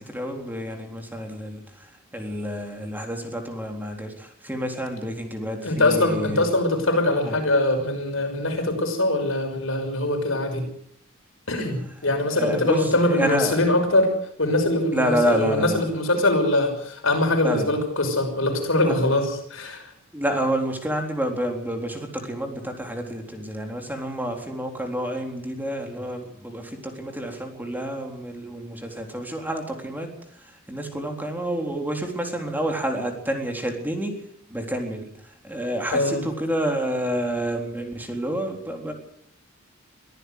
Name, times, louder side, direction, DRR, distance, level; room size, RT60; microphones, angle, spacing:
voice 1, 0.0-1.6 2.1-6.5 7.2-7.3 12.4-12.8 13.1-13.6 14.9-15.8 17.4-17.7 18.8-19.2 20.1-30.1 30.7-34.1 34.5-35.1 35.4-38.9, equal, 10° right, 3 dB, 3.8 m, -28 dB
voice 2, 5.6-10.6 11.5-14.1 14.4-19.9 35.9-36.2, left 1 dB, 75° left, 4 dB, 6.0 m, -22 dB
23.5 x 14.5 x 8.1 m, 0.67 s
head